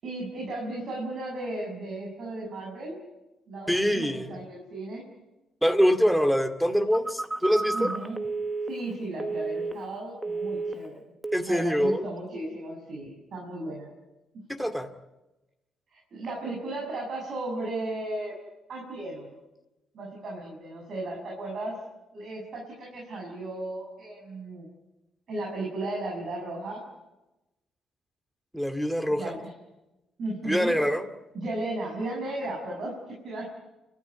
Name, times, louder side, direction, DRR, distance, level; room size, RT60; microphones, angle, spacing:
voice 1, 0.0-3.0 3.5-5.0 7.7-8.2 8.7-11.1 11.5-13.9 15.9-18.4 18.7-19.4 19.9-21.8 22.1-24.7 25.3-26.9 29.1-29.4 30.2-30.8 31.3-33.5, right 2 dB, 60° right, -1 dB, 6.9 m, -35 dB
voice 2, 3.7-4.4 5.6-7.9 11.3-12.0 14.6-14.9 28.5-29.4 30.4-31.1, equal, ahead, 8 dB, 2.2 m, -24 dB
Telephone, 6.9-10.0 10.2-10.9 11.2-11.5, right 3 dB, 20° right, 1.2 m, -32 dB
29.0 x 13.5 x 9.7 m, 1.0 s
cardioid pair, 90°, 0 cm